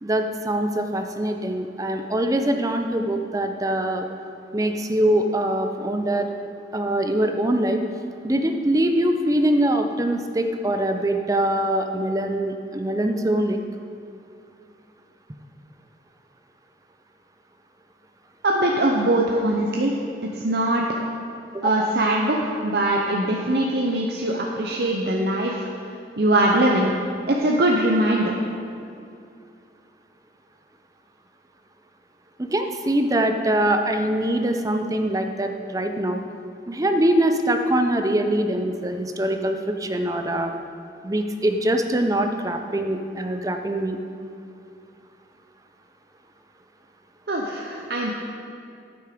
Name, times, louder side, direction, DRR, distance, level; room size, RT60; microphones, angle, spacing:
voice 1, 0.0-4.1 4.5-6.3 6.7-7.8 8.2-13.6 21.5-21.9 32.4-36.2 36.7-40.5 41.0-44.0, right 1 dB, 20° right, 6 dB, 0.6 m, -23 dB
voice 2, 18.4-19.9 20.4-20.8 21.6-25.7 26.2-26.9 27.3-28.3 47.3-48.1, right 1 dB, 60° right, -1 dB, 0.8 m, -21 dB
9.6 x 8.8 x 5.1 m, 2.5 s
head